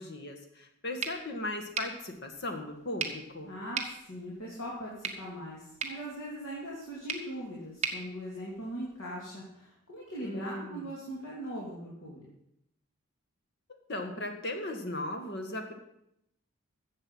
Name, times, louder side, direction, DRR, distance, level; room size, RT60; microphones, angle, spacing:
voice 1, 0.0-3.5 10.2-10.9 13.9-15.7, left 1 dB, 50° left, 3 dB, 1.7 m, -37 dB
sound 1, 1.0-9.1, right 6 dB, 30° right, 1.3 m, -41 dB
voice 2, 3.4-12.3, equal, 70° left, -6 dB, 2.9 m, -40 dB
14.0 x 7.9 x 5.6 m, 0.79 s
head